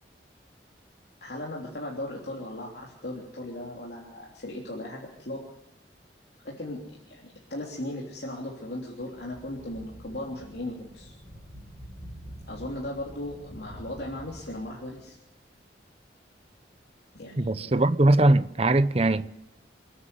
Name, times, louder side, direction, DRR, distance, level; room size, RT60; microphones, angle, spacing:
voice 1, 1.2-5.4 6.4-11.1 12.5-15.2 17.1-17.7, left 1 dB, 65° left, 3.3 m, -37 dB
sound 1, 8.9-15.1, equal, 15° left, 7.5 m, -47 dB
voice 2, 17.4-19.3, right 2 dB, 35° right, 0.7 m, -21 dB
28.0 x 9.9 x 9.5 m
head